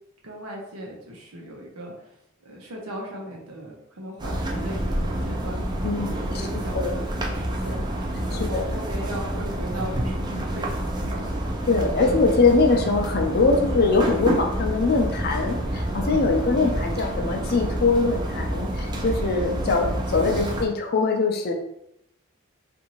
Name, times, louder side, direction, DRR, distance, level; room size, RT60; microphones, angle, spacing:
voice 1, 0.2-2.1 2.4-7.1 7.3-7.8 8.3-11.5 12.4-12.6 20.2-20.5, equal, 90° right, -1 dB, 0.8 m, -38 dB
sound 1, 4.2-20.7, right 1 dB, 20° right, 0.4 m, -28 dB
voice 2, 5.8-6.5 6.7-6.9 8.3-8.7 11.7-21.5, left 3 dB, 45° left, 2 dB, 0.5 m, -22 dB
2.7 x 2.5 x 2.9 m, 0.78 s
head